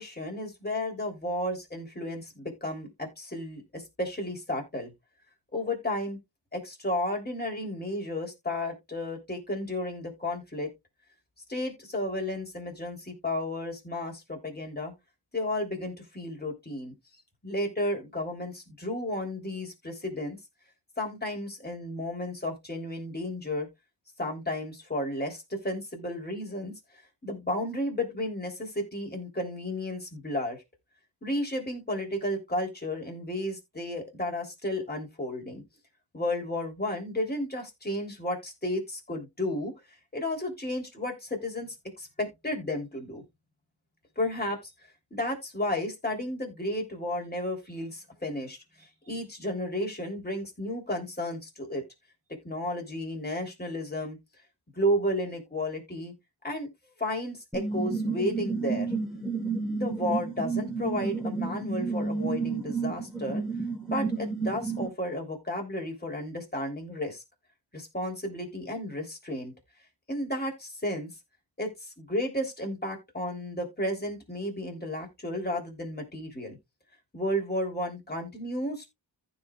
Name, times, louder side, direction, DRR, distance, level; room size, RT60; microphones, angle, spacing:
voice 1, 0.0-4.9 5.5-6.2 6.5-10.7 11.5-14.9 15.3-16.9 17.4-20.4 21.0-23.7 24.2-26.8 27.2-30.6 31.2-35.6 36.1-39.7 40.1-43.2 44.1-44.7 45.1-51.8 52.4-54.2 54.7-56.1 56.4-56.7 57.0-58.9 59.6-63.5 63.9-67.2 67.7-69.5 70.1-71.1 71.6-76.6 77.1-78.9, left 1 dB, 20° left, 3.3 m, -33 dB
sound 1, 57.5-64.9, right 4 dB, ahead, 3.7 m, -31 dB
14.5 x 5.0 x 2.4 m
wide cardioid pair, 85°, 47 cm